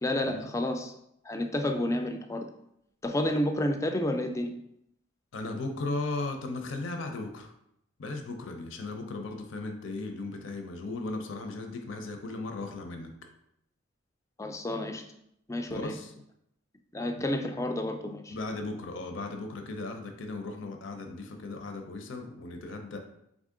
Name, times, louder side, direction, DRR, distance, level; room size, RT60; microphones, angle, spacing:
voice 1, 0.0-0.9 1.3-2.5 3.0-4.5 14.4-15.0 15.5-16.0 16.9-18.4, left 1 dB, 15° left, 5 dB, 0.3 m, -30 dB
voice 2, 5.3-7.5 8.0-13.1 15.7-16.1 18.3-23.0, left 2 dB, 65° left, 5 dB, 0.5 m, -36 dB
4.0 x 3.6 x 3.7 m, 0.76 s
head